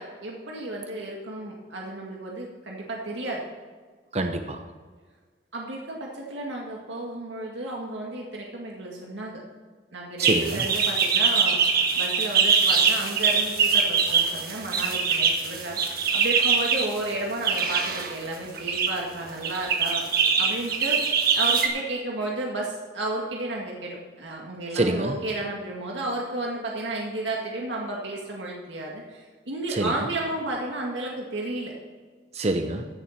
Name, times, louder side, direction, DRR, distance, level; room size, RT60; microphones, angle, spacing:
voice 1, 0.0-3.4 5.5-9.4 9.9-20.0 20.4-21.0 21.3-31.7, right 2 dB, 80° right, -2 dB, 2.0 m, -32 dB
voice 2, 4.1-4.6 10.2-10.6 24.7-25.2 29.7-29.9 32.3-32.9, right 2 dB, 35° right, 6 dB, 0.8 m, -26 dB
sound 1, 10.2-16.9 17.4-18.1 18.6-18.9 19.4-21.7, right 5 dB, 55° right, 1.6 m, -23 dB
15.0 x 7.0 x 5.8 m, 1.5 s
head